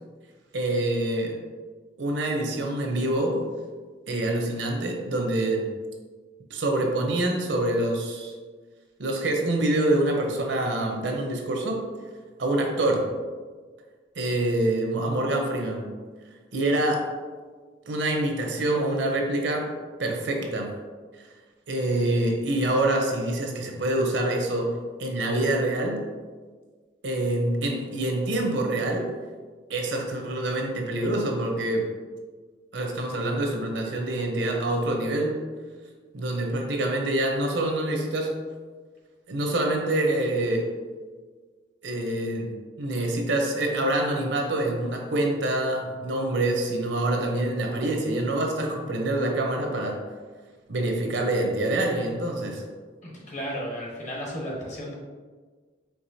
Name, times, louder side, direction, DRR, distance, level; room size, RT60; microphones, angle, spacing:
voice 1, 0.5-1.3 2.0-3.4 4.1-5.7 6.5-8.3 9.0-11.8 12.4-13.1 14.2-15.9 16.5-17.1 17.9-19.7 20.0-20.7 21.2-21.3 21.7-24.7 25.0-26.0 27.0-29.1 29.7-31.9 32.7-35.4 36.1-38.3 39.3-40.7 41.8-42.5 42.8-50.0 50.7-52.6, right 1 dB, 75° right, 2 dB, 0.7 m, -26 dB
voice 2, 53.0-54.9, equal, 40° left, -3 dB, 1.1 m, -34 dB
4.7 x 3.6 x 2.7 m, 1.4 s
head